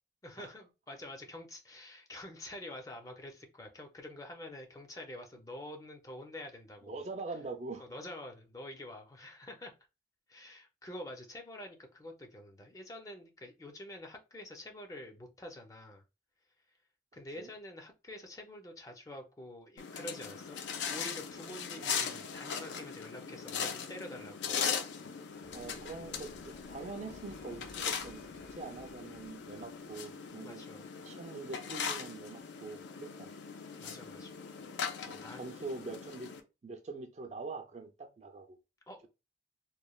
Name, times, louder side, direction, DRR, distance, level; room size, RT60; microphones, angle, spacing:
voice 1, 0.2-7.0 7.8-9.7 10.3-16.0 17.1-20.6 20.9-24.7 30.4-30.8 33.8-34.4 35.2-35.4 38.9-39.1, left 1 dB, 20° left, 0.5 m, -47 dB
voice 2, 6.9-7.8 17.4-17.5 21.8-22.2 25.5-30.6 31.0-33.3 35.0-36.3 36.6-38.6, right 3 dB, 40° right, 0.4 m, -44 dB
sound 1, 19.8-36.4, left 6 dB, 80° left, 0.4 m, -40 dB
sound 2, 25.3-30.0, left 3 dB, 55° left, 0.8 m, -54 dB
3.0 x 2.1 x 2.3 m
head